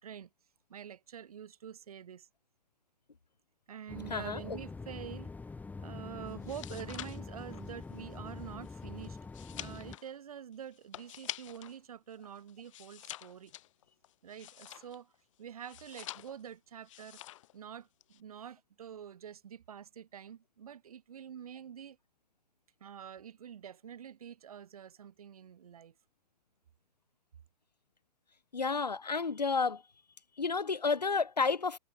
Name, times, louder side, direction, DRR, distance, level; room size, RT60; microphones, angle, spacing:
voice 1, 0.7-2.3 3.7-5.3 5.8-13.5 14.2-15.1 15.4-17.2 17.5-22.0 22.8-25.9, right 8 dB, 60° right, 4.7 m, -47 dB
sound 1, 3.9-10.0, left 4 dB, 5° left, 1.5 m, -44 dB
voice 2, 4.1-4.6 28.5-29.8 30.4-31.8, left 4 dB, 80° left, 1.6 m, -31 dB
sound 2, 6.3-11.8 12.1-15.1 15.6-16.5 16.8-17.5 17.8-18.2, left 14 dB, 50° left, 3.0 m, -47 dB
figure-of-eight pair, 110°, 21 cm